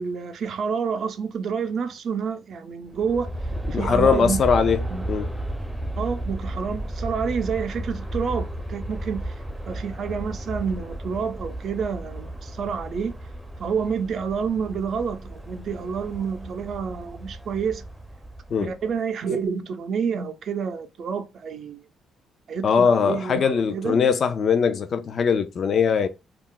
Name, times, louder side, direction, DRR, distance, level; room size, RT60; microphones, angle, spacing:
voice 1, 0.0-3.3 3.7-4.4 4.9-5.1 6.0-9.3 9.7-13.2 13.6-17.8 18.6-21.8 22.5-24.1, right 6 dB, 60° right, 0.5 m, -28 dB
Aircraft, 2.9-18.9, right 1 dB, 5° right, 0.5 m, -33 dB
voice 2, 3.7-4.8 5.1-5.3 18.5-18.7 22.6-26.1, left 6 dB, 55° left, 0.4 m, -21 dB
2.3 x 2.0 x 3.7 m
cardioid pair, 90°, 0 cm